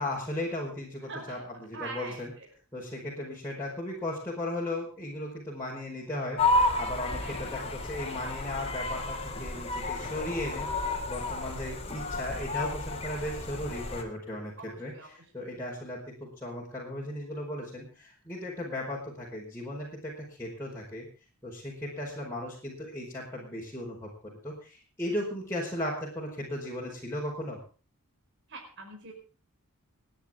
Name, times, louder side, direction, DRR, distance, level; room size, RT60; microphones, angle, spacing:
voice 1, 0.0-2.3 2.7-21.1 21.4-27.6, left 1 dB, 10° left, -5 dB, 4.8 m, -36 dB
voice 2, 1.0-1.4 1.7-2.5 7.2-7.3 14.7-15.1 28.5-29.1, right 3 dB, 55° right, 2 dB, 4.8 m, -42 dB
sound 1, 6.4-14.0, left 2 dB, 30° left, 3.1 m, -31 dB
30.0 x 10.0 x 3.7 m, 0.37 s
head